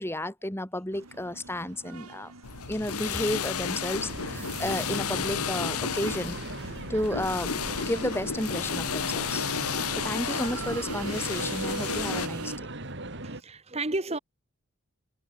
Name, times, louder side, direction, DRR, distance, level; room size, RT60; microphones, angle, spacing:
voice 1, 0.0-2.3 2.7-6.4 6.9-7.5 7.8-9.4 10.0-12.7, left 1 dB, 10° left, 2.3 m, -32 dB
sound 1, 0.9-12.6, right 3 dB, 85° right, 6.7 m, -43 dB
sound 2, 2.4-12.3, left 6 dB, 80° left, 1.3 m, -32 dB
sound 3, 3.9-13.4, right 2 dB, 50° right, 3.3 m, -39 dB
voice 2, 13.1-14.2, right 2 dB, 30° right, 1.7 m, -33 dB
head